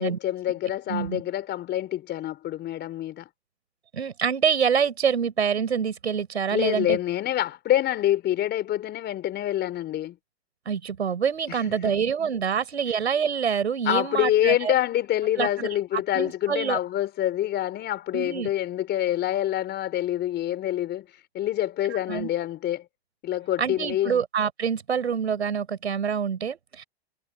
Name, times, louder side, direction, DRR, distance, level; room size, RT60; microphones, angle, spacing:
voice 1, 0.0-3.3 6.5-10.2 11.5-11.9 13.9-21.1 21.3-22.9 23.2-24.2, left 12 dB, 30° left, 4.2 m, -26 dB
voice 2, 0.9-1.2 3.9-7.0 10.6-14.7 15.4-15.7 16.1-16.8 18.1-18.5 21.9-22.3 23.6-26.8, right 7 dB, 90° right, 6.8 m, -26 dB
hypercardioid pair, 115°, 32 cm